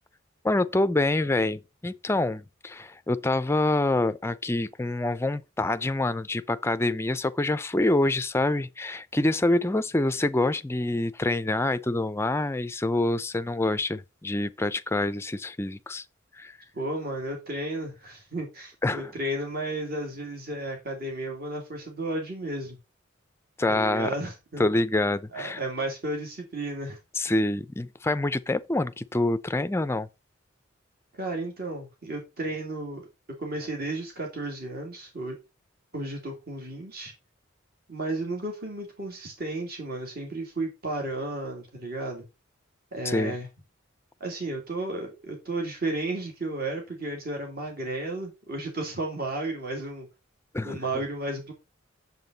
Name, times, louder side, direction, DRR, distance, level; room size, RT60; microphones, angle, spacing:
voice 1, 0.4-16.0 16.4-16.6 18.8-19.1 23.6-24.1 24.6-25.6 27.2-30.1 43.0-43.3 50.5-50.8, left 2 dB, 15° left, 0.4 m, -26 dB
voice 2, 16.7-22.8 23.7-24.7 25.3-27.0 31.1-33.0 33.4-35.3 35.9-37.1 37.9-42.2 42.9-43.5 44.2-50.1 50.6-51.5, right 2 dB, 50° right, 2.6 m, -33 dB
7.7 x 7.3 x 4.0 m
head